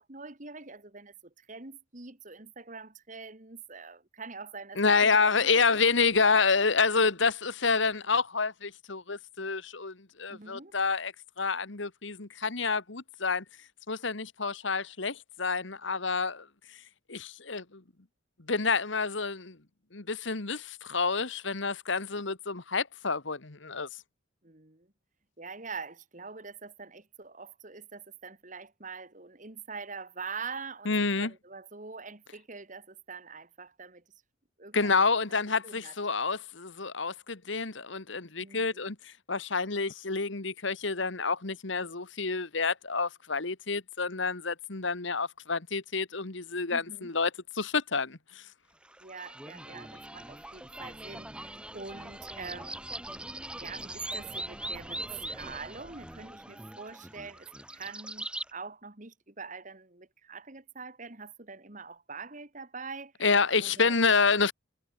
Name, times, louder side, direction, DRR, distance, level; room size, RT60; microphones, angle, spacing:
voice 1, 0.0-5.8 10.3-10.7 24.4-24.9 25.4-34.0 34.6-35.0 35.6-36.0 38.4-38.8 46.7-47.1 49.0-53.1 53.6-63.1 63.6-64.0, right 4 dB, 40° right, 2.0 m, -44 dB
voice 2, 4.8-13.4 13.9-16.5 17.1-17.8 18.5-19.6 19.9-23.9 30.8-31.3 34.7-47.3 47.5-48.4 63.2-64.5, left 4 dB, 70° left, 1.7 m, -28 dB
sound 1, 48.8-58.5, right 1 dB, 5° right, 2.0 m, -41 dB
head